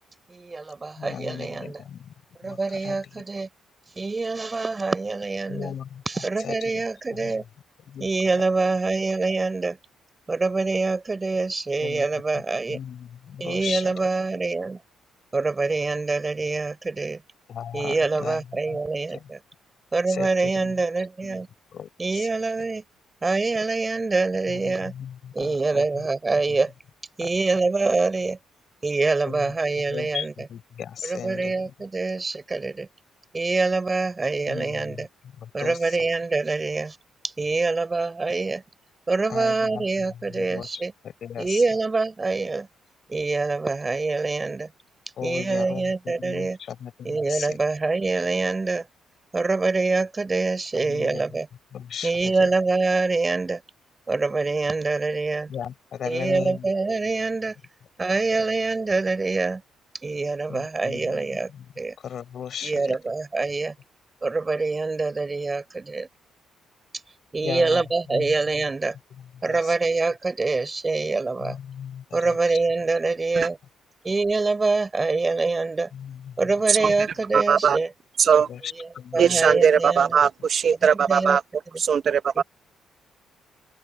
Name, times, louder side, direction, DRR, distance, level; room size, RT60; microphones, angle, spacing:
voice 1, 0.3-1.8 2.4-3.5 4.0-5.7 6.1-7.4 8.0-9.8 10.3-12.8 13.4-14.8 15.3-17.2 17.7-19.4 19.9-21.5 22.0-22.8 23.2-24.9 25.3-26.7 27.2-28.4 28.8-30.3 31.0-32.9 33.3-35.1 35.5-37.0 37.2-38.6 39.1-40.9 41.4-42.7 43.1-44.7 45.2-46.6 47.0-48.8 49.3-51.5 52.0-53.6 54.1-55.5 56.1-57.6 58.0-59.6 60.0-61.5 61.8-62.0 62.6-63.7 64.2-66.1 67.3-69.0 69.4-71.6 72.1-73.6 74.0-75.9 76.4-77.9 79.1-80.2 80.9-81.4, right 3 dB, 25° right, 4.4 m, -25 dB
voice 2, 1.0-2.1 2.4-3.2 5.5-6.8 7.1-7.4 7.9-8.4 11.8-12.1 12.3-12.4 12.7-13.9 17.5-18.8 19.1-19.3 20.1-20.8 21.2-21.4 21.7-22.3 22.6-22.7 24.5-26.1 26.5-26.6 27.2-27.3 29.3-31.7 34.5-36.0 39.3-41.6 45.2-47.6 50.8-51.2 51.7-52.5 55.5-56.7 60.5-63.0 67.4-68.6 69.2-69.8 71.4-72.6 75.9-76.5 76.9-77.0 78.5-79.6 80.2-80.3 81.1-81.2, left 8 dB, 60° left, 5.1 m, -37 dB
voice 3, 77.3-77.8 78.2-78.5 79.2-81.4 81.8-82.4, right 7 dB, 55° right, 0.7 m, -19 dB
cardioid pair, 90°, 0 cm